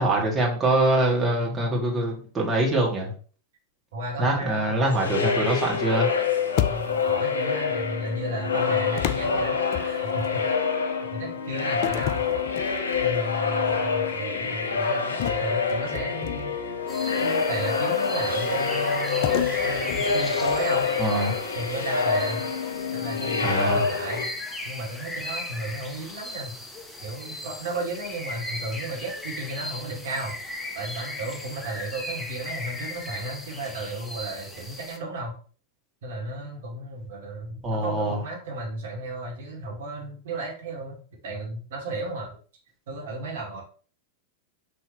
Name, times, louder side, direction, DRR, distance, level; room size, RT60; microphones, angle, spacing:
voice 1, 0.0-3.1 4.2-6.1 21.0-21.3 23.4-23.8 37.6-38.2, right 1 dB, 15° right, -2 dB, 2.3 m, -24 dB
voice 2, 3.9-5.4 6.7-10.4 10.8-12.3 13.0-16.5 17.2-20.9 21.5-22.5 22.9-24.3 24.6-26.6 27.0-30.4 30.7-35.4 36.0-41.0 41.2-42.4 42.9-43.6, right 2 dB, 60° right, -2 dB, 2.4 m, -34 dB
sound 1, 4.9-24.3, left 5 dB, 65° left, 1.2 m, -26 dB
sound 2, 6.6-7.2 9.0-10.3 11.8-13.2 13.6-13.9 15.2-16.7 19.2-20.9, left 12 dB, 45° left, 0.4 m, -31 dB
sound 3, 16.9-35.0, left 1 dB, 5° left, 1.0 m, -37 dB
6.0 x 5.5 x 3.0 m, 0.40 s
figure-of-eight pair, 90°, 0 cm